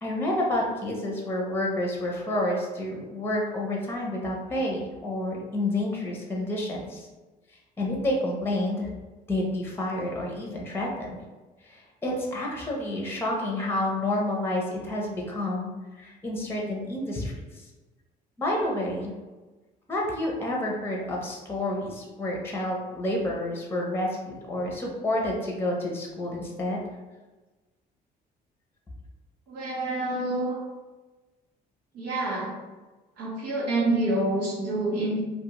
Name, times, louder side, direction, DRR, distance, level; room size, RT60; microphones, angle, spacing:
voice 1, 0.0-7.1 7.8-8.9 9.3-11.2 11.6-15.7 15.9-17.6 18.4-19.1 19.9-26.8, left 1 dB, 15° left, -2 dB, 0.6 m, -29 dB
voice 2, 29.5-30.6 31.9-32.5 33.2-35.2, right 2 dB, 90° right, -7 dB, 0.8 m, -27 dB
2.5 x 2.4 x 2.9 m, 1.2 s
cardioid pair, 110°, 17 cm